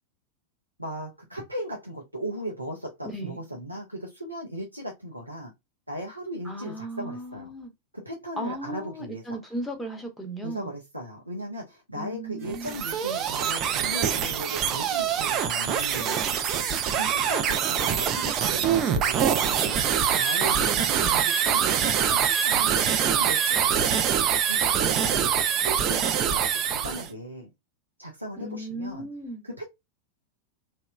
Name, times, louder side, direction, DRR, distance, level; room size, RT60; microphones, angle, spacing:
voice 1, 0.8-5.5 5.9-7.5 7.9-9.2 10.4-16.2 17.0-22.8 23.1-24.0 24.4-27.5 28.0-29.1 29.4-29.6, equal, 85° right, 0.6 m, -37 dB
voice 2, 3.0-3.4 6.4-7.7 8.4-10.7 11.9-12.8 20.4-21.3 28.4-29.5, right 1 dB, 5° left, 0.7 m, -36 dB
sound 1, 12.4-27.1, right 8 dB, 35° right, 0.4 m, -24 dB
2.9 x 2.1 x 2.2 m
figure-of-eight pair, 90°, 0 cm